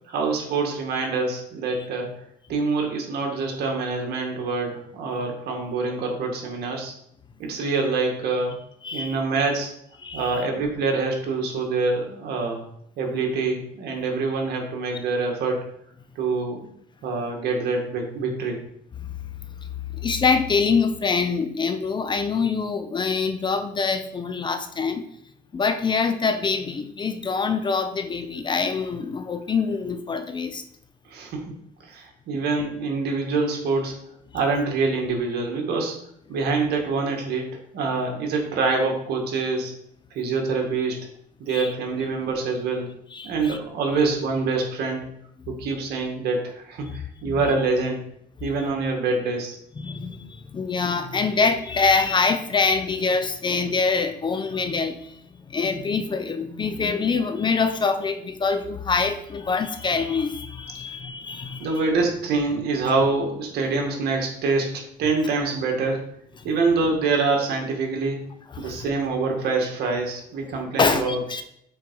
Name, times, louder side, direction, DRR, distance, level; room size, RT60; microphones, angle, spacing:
voice 1, 0.1-2.1 2.5-6.9 7.4-8.6 8.9-9.7 10.1-12.6 13.0-15.6 16.2-16.6 17.0-18.6 31.1-31.5 31.8-33.9 34.3-36.0 36.3-39.7 40.1-41.0 41.4-42.9 43.2-45.1 45.5-48.0 48.4-49.6 61.6-66.0 66.4-68.2 68.6-71.2, right 3 dB, 70° right, 1 dB, 1.8 m, -25 dB
voice 2, 8.8-9.2 10.0-10.4 19.0-19.2 19.6-25.0 25.5-30.6 32.3-32.4 41.5-41.7 43.1-43.6 47.2-47.4 48.4-48.5 49.8-55.2 55.5-61.8 68.5-68.9 70.8-71.4, left 4 dB, 25° left, 9 dB, 0.6 m, -25 dB
6.1 x 4.5 x 4.7 m, 0.71 s
cardioid pair, 110°, 17 cm